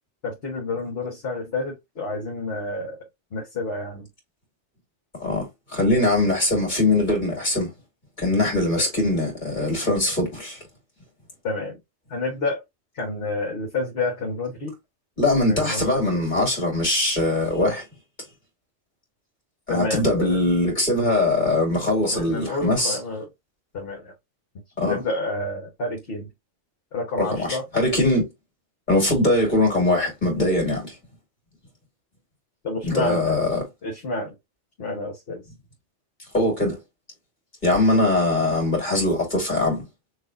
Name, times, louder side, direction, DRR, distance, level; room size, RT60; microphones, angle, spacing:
voice 1, 0.2-3.0 3.3-4.1 11.4-11.8 12.1-12.6 12.9-14.7 15.5-15.8 19.7-20.4 22.1-23.3 23.7-24.1 24.9-26.3 26.9-27.6 32.6-33.4 33.8-34.3 34.8-35.4, left 2 dB, 60° left, 1.4 m, -29 dB
voice 2, 5.7-7.7 8.2-10.6 15.2-17.8 19.7-23.0 24.8-25.0 27.2-28.3 28.9-30.9 32.8-33.6 36.3-36.8 37.6-39.9, left 2 dB, 40° left, 2.5 m, -21 dB
6.2 x 2.5 x 2.6 m
omnidirectional pair, 1.2 m